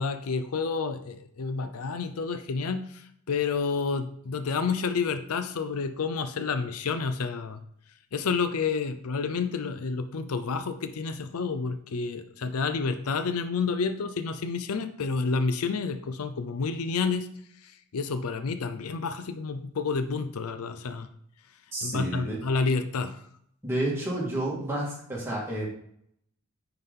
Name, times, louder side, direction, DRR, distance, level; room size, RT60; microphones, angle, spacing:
voice 1, 0.0-7.6 8.1-17.3 17.6-21.1 21.8-23.2, left 4 dB, 75° left, 9 dB, 0.5 m, -29 dB
voice 2, 21.7-22.4 23.6-25.7, right 1 dB, 10° right, -5 dB, 2.1 m, -30 dB
9.5 x 3.9 x 3.7 m, 0.69 s
head